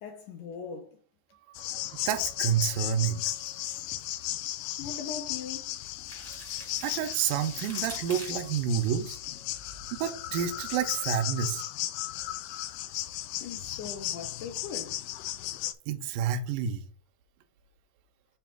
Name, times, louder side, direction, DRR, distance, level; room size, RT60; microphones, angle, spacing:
voice 1, 0.0-1.0 4.8-5.7 13.4-15.0, left 6 dB, 70° left, 2.0 m, -40 dB
sound 1, 1.5-15.7, left 14 dB, 90° left, 2.7 m, -36 dB
voice 2, 1.6-3.3 6.8-9.2 10.0-11.6 15.9-16.8, right 8 dB, 75° right, 2.1 m, -29 dB
sound 2, 3.3-4.3 5.9-9.0, right 1 dB, 10° right, 0.9 m, -46 dB
7.2 x 2.9 x 5.8 m
omnidirectional pair, 4.7 m